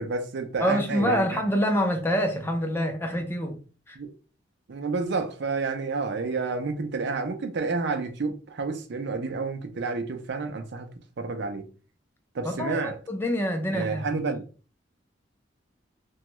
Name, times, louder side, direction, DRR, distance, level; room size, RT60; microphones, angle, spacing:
voice 1, 0.0-1.4 4.0-4.1 4.7-10.9 11.2-11.7 12.3-13.0 13.7-14.4, right 4 dB, 65° right, 0.5 m, -30 dB
voice 2, 0.6-3.6 3.9-4.0 12.4-14.1, equal, 10° left, 0.6 m, -26 dB
3.0 x 2.3 x 3.0 m
head